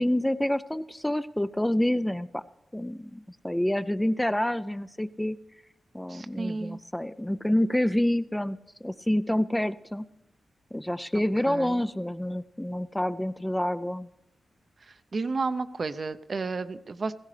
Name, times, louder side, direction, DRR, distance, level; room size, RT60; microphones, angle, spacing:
voice 1, 0.0-2.4 2.7-5.4 5.9-10.0 10.7-14.1, left 1 dB, 10° left, 13 dB, 0.4 m, -28 dB
voice 2, 6.1-6.8 11.5-11.8 14.9-17.1, right 4 dB, 50° right, 12 dB, 0.5 m, -32 dB
17.0 x 15.0 x 3.3 m, 0.90 s
cardioid pair, 75°, 0 cm